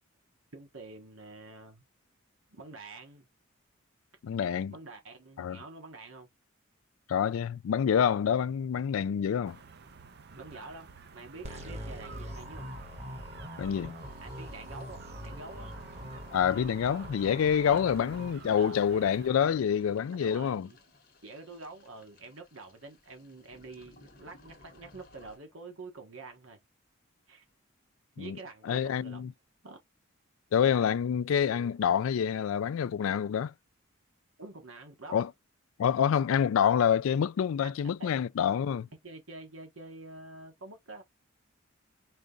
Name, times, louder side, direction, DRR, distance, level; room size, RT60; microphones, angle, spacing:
voice 1, 0.5-1.8 2.5-3.3 4.7-6.3 10.3-12.7 14.2-15.8 17.8-19.0 19.4-19.5 20.2-20.8 21.2-26.6 27.3-27.4 28.2-29.3 29.6-29.8 34.4-35.2 38.0-38.1 39.0-41.0, right 3 dB, 75° right, 1.3 m, -47 dB
voice 2, 4.2-4.7 5.4-5.6 7.1-9.6 13.6-14.0 16.3-20.7 28.2-28.4 28.7-29.3 30.5-33.5 35.1-35.3 35.8-38.9, left 8 dB, 80° left, 0.3 m, -27 dB
sound 1, 9.4-19.3, right 5 dB, 50° right, 0.7 m, -52 dB
sound 2, 11.4-18.3, equal, 30° right, 1.4 m, -43 dB
sound 3, 14.0-25.4, left 2 dB, 45° left, 1.2 m, -59 dB
4.9 x 2.4 x 3.7 m
head